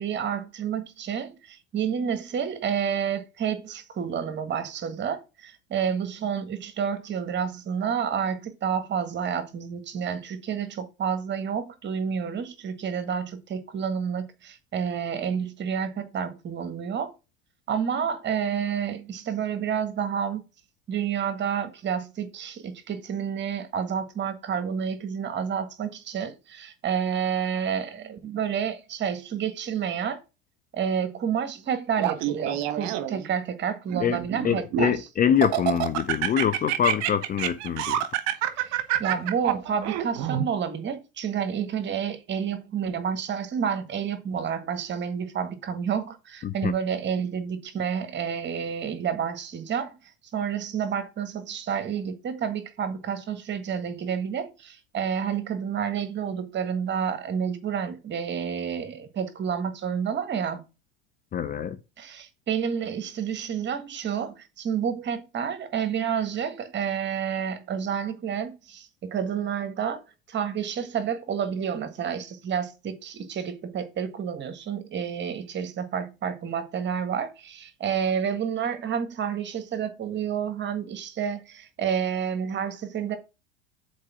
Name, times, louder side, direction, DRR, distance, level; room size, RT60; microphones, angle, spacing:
voice 1, 0.0-17.1 17.7-20.4 20.9-30.2 30.7-35.1 38.6-50.0 50.3-60.6 62.0-70.0 70.3-83.2, right 7 dB, 35° right, 1.6 m, -29 dB
Laughter, 32.0-33.3 33.9-35.0 35.4-40.4, right 13 dB, 50° right, 1.2 m, -27 dB
voice 2, 34.4-38.0 46.4-46.7 61.3-61.8, left 9 dB, 25° left, 0.6 m, -25 dB
7.3 x 4.5 x 5.9 m
hypercardioid pair, 80°, 34 cm